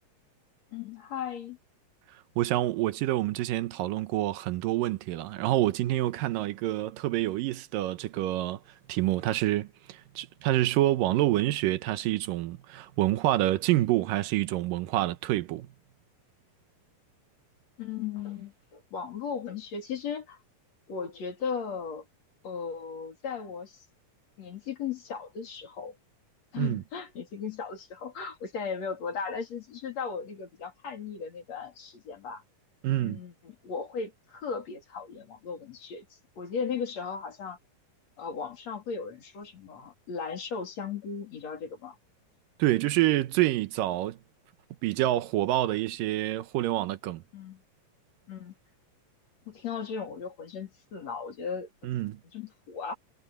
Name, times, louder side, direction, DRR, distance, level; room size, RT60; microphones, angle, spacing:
voice 1, 0.7-1.6 17.8-20.4 20.9-22.0 22.4-23.8 24.4-26.0 26.5-32.4 33.0-37.6 38.2-42.0 47.3-47.6 48.3-48.5 49.5-51.7 52.3-52.9, left 6 dB, 50° left, 4.2 m, -36 dB
voice 2, 2.4-8.6 8.9-15.7 26.6-26.8 32.8-33.2 42.6-44.2 44.8-47.2 51.8-52.2, right 15 dB, 85° right, 2.6 m, -27 dB
omnidirectional pair, 3.9 m